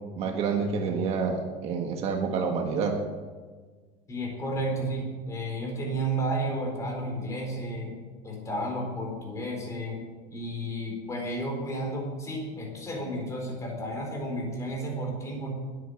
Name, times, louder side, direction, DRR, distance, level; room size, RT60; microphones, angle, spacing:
voice 1, 0.2-2.9, right 5 dB, 40° right, 3 dB, 1.6 m, -28 dB
voice 2, 4.1-7.9 8.2-10.0 10.3-15.5, right 1 dB, 20° left, 0 dB, 4.3 m, -32 dB
20.5 x 9.4 x 6.5 m, 1.4 s
cardioid pair, 175°, 16 cm